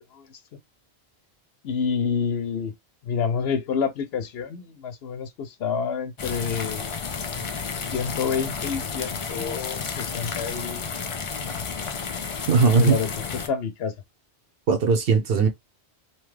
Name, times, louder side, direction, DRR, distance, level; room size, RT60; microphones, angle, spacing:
voice 1, 1.6-2.7 3.0-6.9 7.7-10.9 12.7-13.9, left 6 dB, 70° left, 0.8 m, -28 dB
sound 1, 6.2-13.5, left 5 dB, 50° left, 0.3 m, -32 dB
voice 2, 12.5-13.0 14.7-15.5, right 4 dB, 60° right, 0.8 m, -19 dB
2.9 x 2.3 x 3.1 m
omnidirectional pair, 1.1 m